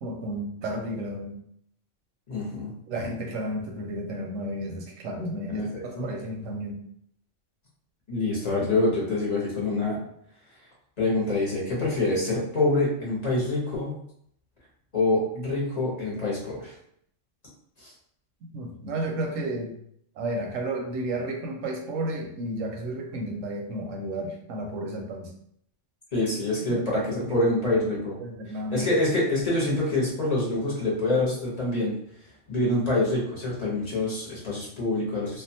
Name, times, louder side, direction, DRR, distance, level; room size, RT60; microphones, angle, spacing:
voice 1, 0.0-1.4 2.9-6.8 18.4-19.8 20.2-25.3 26.7-27.5 28.2-28.9, right 1 dB, 85° right, 2 dB, 1.0 m, -32 dB
voice 2, 2.3-2.7 5.5-6.1 8.1-10.0 11.0-14.0 14.9-16.7 17.8-17.9 26.1-28.2 28.7-31.9 32.5-35.4, left 2 dB, 35° left, -6 dB, 0.9 m, -26 dB
2.6 x 2.3 x 2.7 m, 0.69 s
omnidirectional pair, 1.3 m